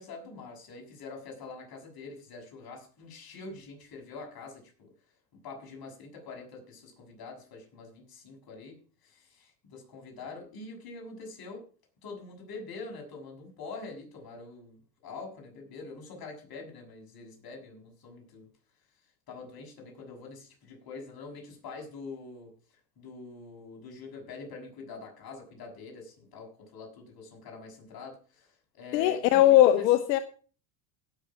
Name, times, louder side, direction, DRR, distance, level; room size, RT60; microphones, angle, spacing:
voice 1, 0.0-4.9 5.4-11.7 12.0-18.5 19.3-22.5 23.0-29.9, left 3 dB, 45° left, 1 dB, 6.9 m, -45 dB
voice 2, 28.9-30.2, left 13 dB, 85° left, 11 dB, 1.0 m, -20 dB
17.5 x 7.0 x 4.9 m, 0.39 s
supercardioid pair, 90°, 49 cm